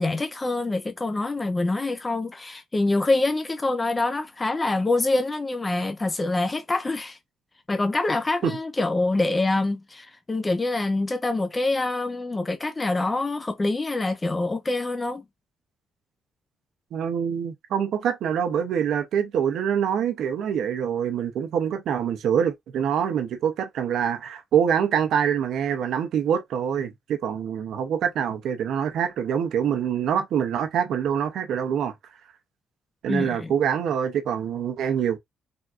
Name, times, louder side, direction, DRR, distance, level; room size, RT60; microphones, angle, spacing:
voice 1, 0.0-7.2 7.7-15.2 33.1-33.5, left 2 dB, 20° left, 0.5 m, -25 dB
voice 2, 16.9-31.9 33.0-35.2, right 8 dB, 75° right, 0.7 m, -25 dB
3.6 x 2.6 x 2.4 m
cardioid pair, 90°, 0 cm